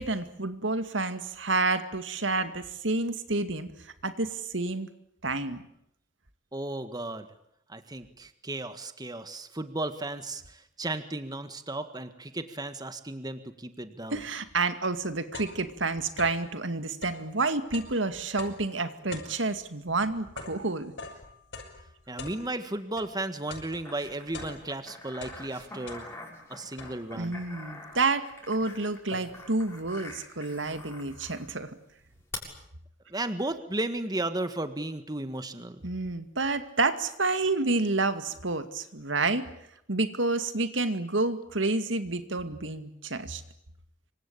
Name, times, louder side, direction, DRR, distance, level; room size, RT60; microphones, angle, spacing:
voice 1, 0.0-4.9 5.2-5.6 14.1-20.9 27.2-31.8 35.8-39.5 39.9-43.4, right 3 dB, 75° right, 9 dB, 2.3 m, -29 dB
voice 2, 6.5-7.3 7.7-14.2 22.1-26.1 26.5-27.4 33.1-35.8, right 2 dB, 20° right, 9 dB, 1.7 m, -34 dB
sound 1, 14.9-16.5 16.9-23.2 23.5-24.9 25.1-26.4 26.8-27.3 27.9-28.0 28.3-29.6, left 3 dB, 70° left, 6.5 m, -45 dB
sound 2, 23.8-31.5 32.3-32.4, left 2 dB, 15° left, 6.8 m, -45 dB
26.5 x 25.0 x 8.9 m, 0.75 s
head